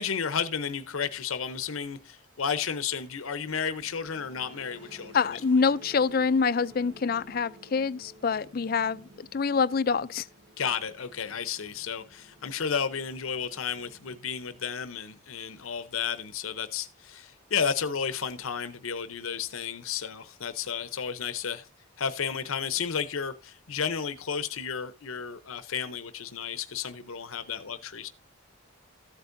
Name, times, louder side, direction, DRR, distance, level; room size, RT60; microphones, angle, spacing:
voice 1, 0.0-5.4 10.6-21.7 22.0-28.1, left 7 dB, 85° left, 0.7 m, -32 dB
sound 1, 3.8-15.3, equal, 60° right, 1.2 m, -54 dB
voice 2, 5.1-10.3, left 5 dB, 45° left, 0.4 m, -26 dB
14.5 x 8.2 x 2.6 m
head